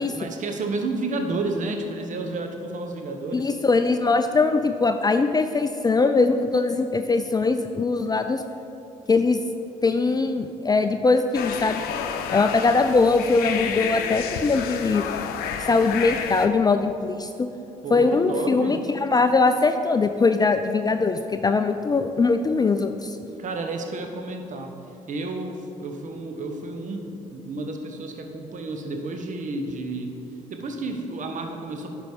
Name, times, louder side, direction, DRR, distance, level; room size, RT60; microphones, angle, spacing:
voice 1, 0.0-3.5 17.8-18.8 23.2-24.7 25.1-30.1 30.5-31.9, right 2 dB, 50° right, 4 dB, 1.2 m, -31 dB
voice 2, 3.3-8.4 9.1-9.4 9.8-11.8 12.3-15.0 15.7-17.5 17.9-23.2, left 3 dB, 25° left, 8 dB, 0.5 m, -21 dB
sound 1, 11.3-16.5, left 7 dB, 70° left, 0.7 m, -30 dB
10.5 x 5.1 x 5.2 m, 2.7 s
hypercardioid pair, 55°, 16 cm